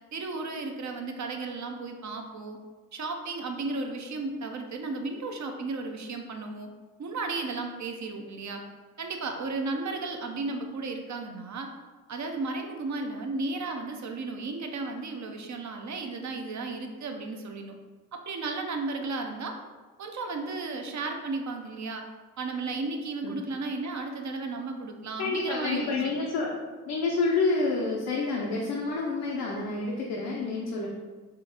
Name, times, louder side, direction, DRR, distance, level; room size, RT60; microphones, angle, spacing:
voice 1, 0.1-2.6 2.9-6.7 7.0-8.6 9.0-11.7 12.1-17.7 18.1-19.5 20.0-22.0 22.4-25.9, right 3 dB, 50° right, 4 dB, 0.6 m, -34 dB
voice 2, 25.2-26.5 26.9-30.9, left 3 dB, 75° left, -2 dB, 0.6 m, -28 dB
3.7 x 2.5 x 2.8 m, 1.4 s
supercardioid pair, 40°, 38 cm